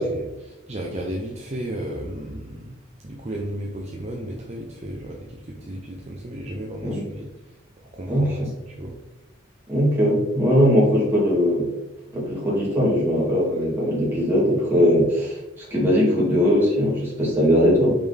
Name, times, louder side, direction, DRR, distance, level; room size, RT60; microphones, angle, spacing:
voice 1, 0.0-2.8 3.0-7.3 7.9-8.9, right 1 dB, 35° right, -1 dB, 0.7 m, -34 dB
voice 2, 8.1-8.5 9.7-11.7 12.1-17.9, equal, 10° right, -6 dB, 2.4 m, -20 dB
6.0 x 5.4 x 3.5 m, 0.99 s
head